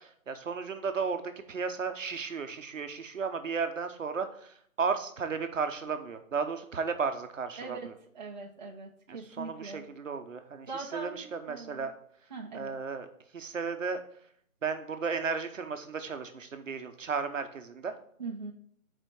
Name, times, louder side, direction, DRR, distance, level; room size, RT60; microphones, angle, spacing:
voice 1, 0.0-7.8 9.1-11.9 12.5-13.1 13.3-14.0 14.6-17.9, right 5 dB, 65° right, 8 dB, 0.9 m, -34 dB
voice 2, 7.6-7.9 8.1-9.8 10.7-11.9 12.3-12.8 18.2-18.5, right 4 dB, 30° right, 0 dB, 0.7 m, -41 dB
6.7 x 4.4 x 4.5 m, 0.66 s
hypercardioid pair, 165°, 42 cm